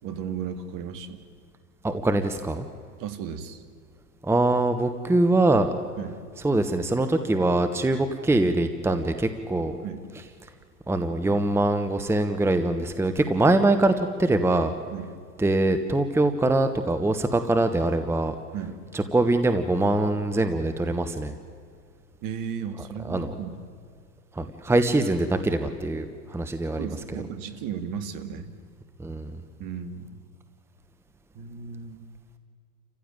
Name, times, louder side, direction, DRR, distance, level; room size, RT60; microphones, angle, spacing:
voice 1, 0.0-1.2 3.0-3.6 6.0-6.2 9.8-10.1 14.9-15.1 18.5-18.8 22.2-23.6 26.8-28.5 29.6-30.2 31.3-32.0, right 7 dB, 45° right, 11 dB, 2.2 m, -35 dB
voice 2, 1.8-2.7 4.2-5.7 6.4-9.8 10.9-14.7 15.4-18.3 18.9-21.3 23.0-23.3 24.3-26.9 29.0-29.3, right 2 dB, 5° right, 9 dB, 1.1 m, -23 dB
29.5 x 15.5 x 9.0 m, 2.1 s
hypercardioid pair, 100°, 48 cm